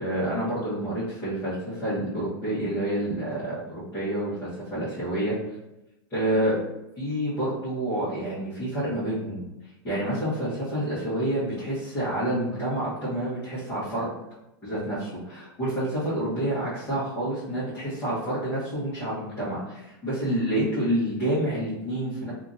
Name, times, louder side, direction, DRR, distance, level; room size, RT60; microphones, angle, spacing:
voice 1, 0.0-5.3 6.1-6.5 7.0-9.5 9.8-14.1 14.6-15.1 15.6-22.3, right 1 dB, 20° left, -12 dB, 1.2 m, -28 dB
2.8 x 2.5 x 2.6 m, 0.93 s
supercardioid pair, 145°, 12 cm